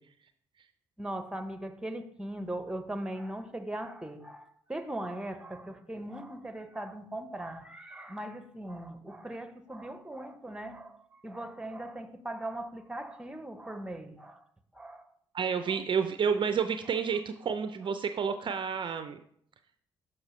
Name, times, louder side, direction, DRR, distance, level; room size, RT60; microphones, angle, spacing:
voice 1, 1.0-11.0 11.2-14.4 14.7-15.1 15.6-15.8, right 1 dB, 5° right, 0.8 m, -39 dB
voice 2, 15.3-19.2, right 6 dB, 40° right, 0.4 m, -30 dB
6.3 x 5.9 x 3.1 m
hypercardioid pair, 45°, 12 cm